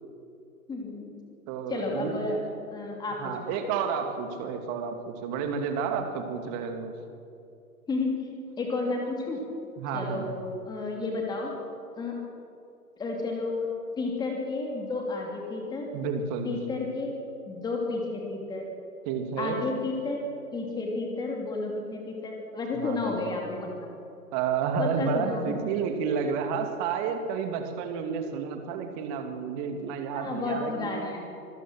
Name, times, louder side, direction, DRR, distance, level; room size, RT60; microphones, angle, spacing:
voice 1, 0.7-1.1 1.7-2.4 2.7-3.3 7.9-8.2 8.6-9.4 9.9-11.5 12.0-12.1 13.0-13.7 14.0-15.9 16.4-17.1 17.5-18.7 19.4-20.2 20.5-23.9 24.8-25.6 30.1-31.2, left 3 dB, 10° left, 0 dB, 2.7 m, -31 dB
voice 2, 1.5-2.2 3.2-6.9 9.8-10.3 15.9-16.5 19.1-19.6 22.7-23.0 24.3-30.9, right 6 dB, 25° right, 5 dB, 2.2 m, -30 dB
26.0 x 16.0 x 6.3 m, 2.6 s
figure-of-eight pair, 120°, 45 cm